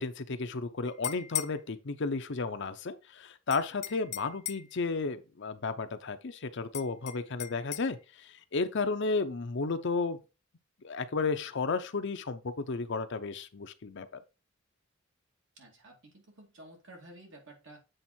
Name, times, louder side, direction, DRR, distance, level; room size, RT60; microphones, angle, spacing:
voice 1, 0.0-10.2 10.8-14.1, left 4 dB, 60° left, 0.7 m, -33 dB
sound 1, 0.8-1.6 3.5-4.7 6.7-7.9, left 12 dB, 35° left, 0.4 m, -38 dB
voice 2, 15.6-17.8, right 1 dB, 65° right, 2.4 m, -52 dB
7.8 x 3.6 x 4.3 m
head